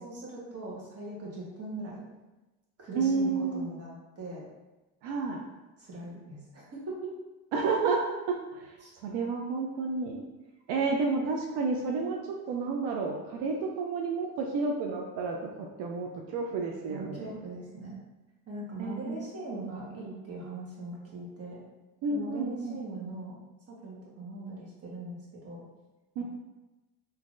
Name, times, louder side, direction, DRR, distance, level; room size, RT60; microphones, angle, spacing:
voice 1, 0.0-2.0 2.8-4.4 5.8-7.1 8.8-8.9 16.9-18.0 18.5-21.6 22.1-23.4 23.7-25.6, right 2 dB, 35° right, -4 dB, 1.2 m, -40 dB
voice 2, 2.9-3.6 5.0-5.4 7.5-8.7 9.0-10.2 10.7-17.3 18.8-19.3 22.0-22.8 26.2-26.3, right 4 dB, 85° right, 1 dB, 0.5 m, -31 dB
3.7 x 2.7 x 2.5 m, 1.1 s
cardioid pair, 95°, 39 cm